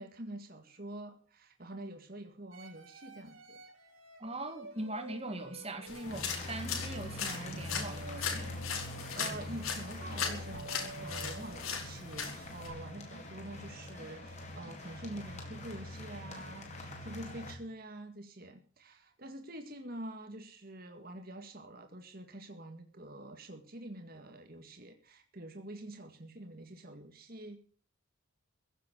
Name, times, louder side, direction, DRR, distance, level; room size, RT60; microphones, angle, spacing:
voice 1, 0.0-3.6 8.8-27.6, right 1 dB, 45° right, 5 dB, 1.9 m, -46 dB
sound 1, 2.5-11.8, right 2 dB, 85° right, 3.9 m, -51 dB
voice 2, 4.2-8.5, right 1 dB, 30° right, 7 dB, 2.4 m, -41 dB
sound 2, 5.9-12.7, left 6 dB, 85° left, 4.7 m, -39 dB
sound 3, 6.0-17.5, left 1 dB, 35° left, 4.3 m, -44 dB
16.0 x 7.5 x 9.2 m, 0.42 s
head